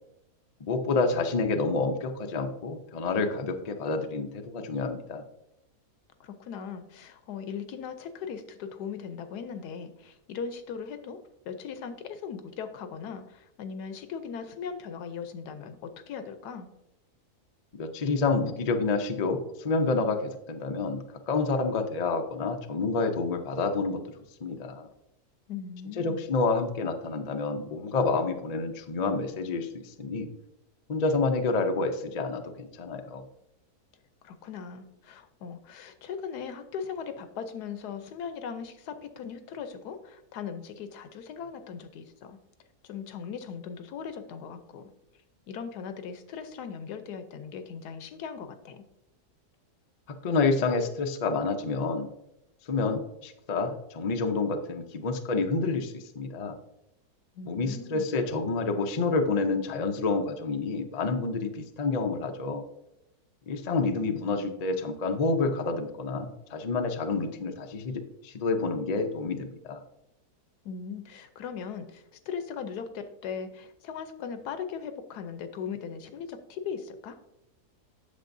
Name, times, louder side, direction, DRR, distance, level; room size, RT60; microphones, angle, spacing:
voice 1, 0.6-5.2 17.7-24.0 24.4-24.9 26.0-30.3 30.9-33.2 50.1-52.1 52.7-56.6 57.5-62.6 63.5-69.8, left 3 dB, 70° left, 6 dB, 0.3 m, -28 dB
voice 2, 6.2-16.7 25.5-26.3 34.2-42.4 42.8-44.9 45.5-48.8 57.3-58.1 70.6-77.2, left 6 dB, 85° left, 9 dB, 1.3 m, -39 dB
8.3 x 6.7 x 2.6 m, 0.86 s
omnidirectional pair, 1.7 m